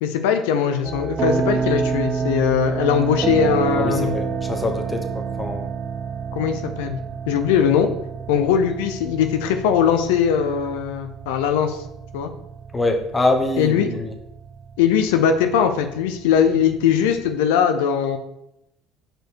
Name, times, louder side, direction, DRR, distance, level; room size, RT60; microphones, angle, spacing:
voice 1, 0.0-4.1 6.3-7.0 7.3-7.9 8.3-11.8 12.1-12.3 13.6-13.9 14.8-18.2, left 8 dB, 90° left, 7 dB, 0.6 m, -20 dB
sound 1, 0.8-17.3, right 5 dB, 40° right, 0.6 m, -29 dB
voice 2, 3.8-5.7 12.7-14.1, left 2 dB, 15° left, 4 dB, 0.9 m, -24 dB
5.2 x 4.4 x 4.6 m, 0.82 s
supercardioid pair, 100°, 0 cm